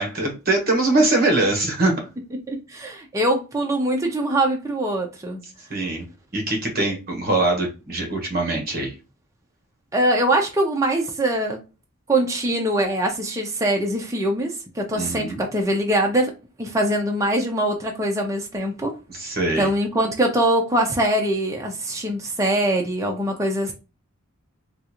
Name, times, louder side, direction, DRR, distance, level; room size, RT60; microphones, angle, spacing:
voice 1, 0.0-1.9 5.7-6.0 6.3-8.9 15.0-15.4 19.1-19.7, right 2 dB, 45° right, 1.1 m, -22 dB
voice 2, 2.5-5.4 9.9-11.6 12.1-16.3 16.6-18.9 19.6-23.7, right 1 dB, 15° right, 0.5 m, -23 dB
3.7 x 2.3 x 2.9 m
head